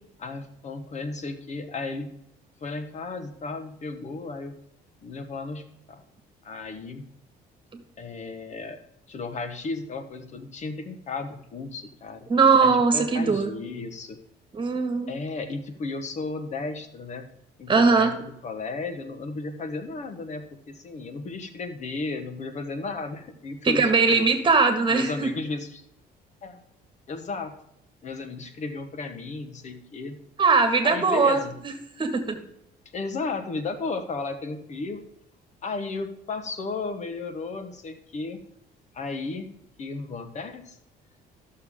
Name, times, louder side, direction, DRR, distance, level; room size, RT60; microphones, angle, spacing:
voice 1, 0.2-2.1 2.6-4.6 5.0-6.0 6.4-7.0 8.0-8.8 9.1-12.3 12.6-14.2 15.1-17.3 17.6-24.3 24.9-25.8 26.4-26.6 27.1-27.5 28.0-30.2 30.8-31.5 32.9-35.0 35.6-38.4 38.9-39.5 39.8-40.8, left 3 dB, 45° left, 8 dB, 1.1 m, -34 dB
voice 2, 12.3-13.5 14.5-15.1 17.7-18.1 23.6-25.3 30.4-31.4 32.0-32.4, right 4 dB, 30° right, 6 dB, 1.8 m, -20 dB
13.5 x 6.7 x 3.7 m, 0.78 s
cardioid pair, 110°, 17 cm